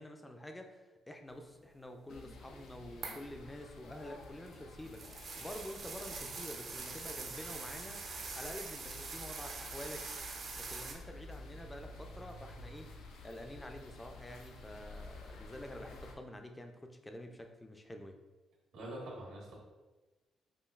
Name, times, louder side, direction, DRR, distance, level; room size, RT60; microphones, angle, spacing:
voice 1, 0.0-5.0 5.4-8.0 8.4-10.1 10.6-12.9 13.2-18.2, left 1 dB, 10° left, 4 dB, 0.4 m, -48 dB
sound 1, 2.1-16.1, left 2 dB, 85° left, 0.5 m, -51 dB
sound 2, 3.0-3.3 4.2-10.9, right 4 dB, 55° right, 0.5 m, -44 dB
voice 2, 18.7-19.5, right 1 dB, 85° right, -5 dB, 1.4 m, -44 dB
5.1 x 2.4 x 2.4 m, 1.2 s
cardioid pair, 90°, 0 cm